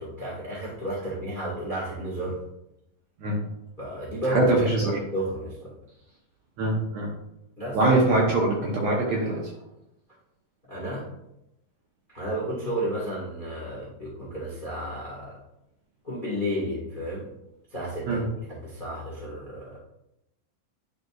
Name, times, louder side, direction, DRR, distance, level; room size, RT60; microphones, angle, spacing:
voice 1, 0.0-2.4 3.8-5.8 7.6-7.8 10.7-11.1 12.1-15.4 16.0-17.3 17.7-19.8, right 1 dB, 80° left, -6 dB, 0.4 m, -32 dB
voice 2, 4.3-5.0 6.6-7.1 7.7-9.5 18.1-18.2, right 2 dB, 70° right, -3 dB, 1.7 m, -23 dB
10.5 x 5.1 x 2.4 m, 0.85 s
omnidirectional pair, 4.2 m